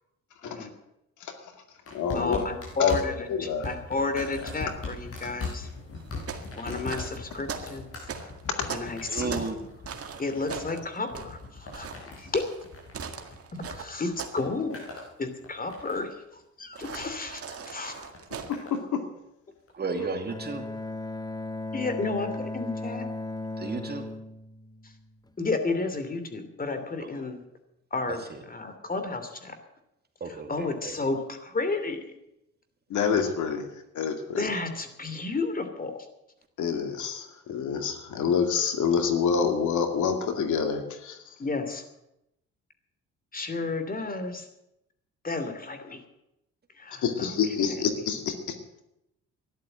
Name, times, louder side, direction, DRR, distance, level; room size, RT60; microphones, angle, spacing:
voice 1, 1.2-1.5 1.9-2.4 2.8-2.9 3.3-3.7 8.6-8.7 18.5-19.0 32.9-34.5 36.6-41.4 47.0-48.6, left 6 dB, 75° left, 6 dB, 2.3 m, -27 dB
sound 1, 1.9-13.8 14.1-15.1 15.4-16.2 17.1-17.4 18.1-18.8 19.7-19.8, left 3 dB, 50° left, 7.2 m, -40 dB
voice 2, 2.1-3.1 3.4-5.7 6.6-7.9 8.7-9.5 10.2-11.9 12.2-12.5 13.5-14.9 15.2-18.1 21.7-23.0 24.8-24.9 25.4-27.4 27.9-29.6 30.5-32.0 34.4-36.1 41.4-41.8 43.3-44.5 45.2-46.0 46.8-47.3, left 3 dB, 30° left, 8 dB, 2.8 m, -32 dB
sound 2, 6.0-9.6 9.8-14.5 14.7-15.1 16.7-18.5, right 6 dB, 50° right, 2.0 m, -40 dB
voice 3, 9.1-9.6 19.7-20.7 23.6-24.1 27.0-27.1 28.1-28.4 30.2-30.9, right 4 dB, 35° right, 5 dB, 2.4 m, -33 dB
Bowed string instrument, 20.3-25.3, left 2 dB, 15° left, 1.1 m, -36 dB
13.0 x 11.5 x 9.0 m, 0.86 s
cardioid pair, 90°, 30 cm